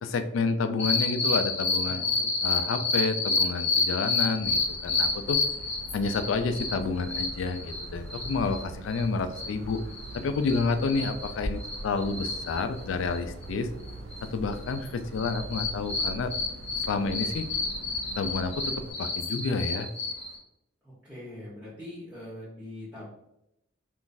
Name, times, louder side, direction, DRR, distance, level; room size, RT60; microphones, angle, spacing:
voice 1, 0.0-2.0 2.4-5.4 5.9-9.8 10.1-13.7 14.3-16.3 16.8-17.5 18.2-19.9, left 4 dB, 80° left, 9 dB, 0.3 m, -29 dB
sound 1, 0.8-8.6 8.9-9.0 9.3-13.5 13.8-14.9 15.2-20.4, left 3 dB, 35° left, 0.6 m, -30 dB
voice 2, 1.8-2.4 5.6-5.7 20.8-23.1, left 1 dB, 5° right, -9 dB, 1.0 m, -43 dB
Motor vehicle (road) / Siren, 4.4-18.9, right 2 dB, 70° right, 0.3 m, -43 dB
3.8 x 2.4 x 2.5 m, 0.82 s
head